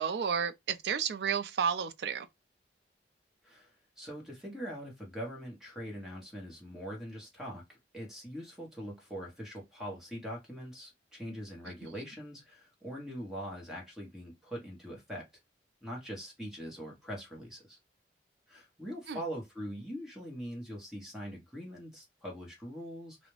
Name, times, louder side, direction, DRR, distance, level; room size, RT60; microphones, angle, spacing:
voice 1, 0.0-2.3 19.1-19.2, right 7 dB, 65° right, 0.3 m, -31 dB
voice 2, 4.0-15.3 15.8-17.8 18.5-23.3, equal, 5° right, 0.9 m, -42 dB
2.4 x 2.0 x 3.0 m
head